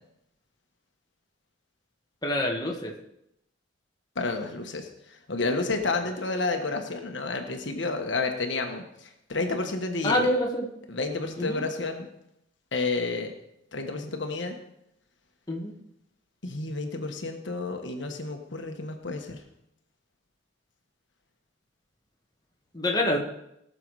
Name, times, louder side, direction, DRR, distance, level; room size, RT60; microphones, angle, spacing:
voice 1, 2.2-2.9 10.0-10.6 11.4-11.6 15.5-15.7 22.7-23.2, left 1 dB, 20° left, -1 dB, 1.7 m, -26 dB
voice 2, 4.1-10.3 10.9-12.1 12.7-13.3 13.7-14.6 16.4-19.4, left 3 dB, 70° left, 4 dB, 1.4 m, -30 dB
18.5 x 6.9 x 4.8 m, 0.79 s
head